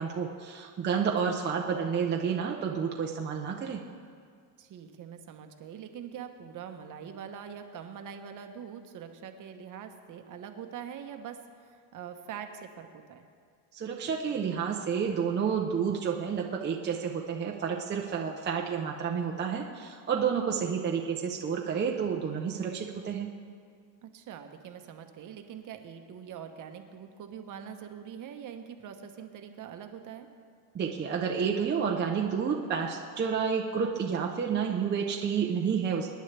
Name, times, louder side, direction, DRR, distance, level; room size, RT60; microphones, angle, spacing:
voice 1, 0.0-3.8 13.7-23.3 30.7-36.1, right 6 dB, 25° right, 0 dB, 0.8 m, -30 dB
voice 2, 4.6-11.4 11.6-13.3 20.3-20.7 24.0-30.3, right 8 dB, 45° right, 6 dB, 1.1 m, -43 dB
25.0 x 10.5 x 3.4 m, 2.1 s
cardioid pair, 150°, 45 cm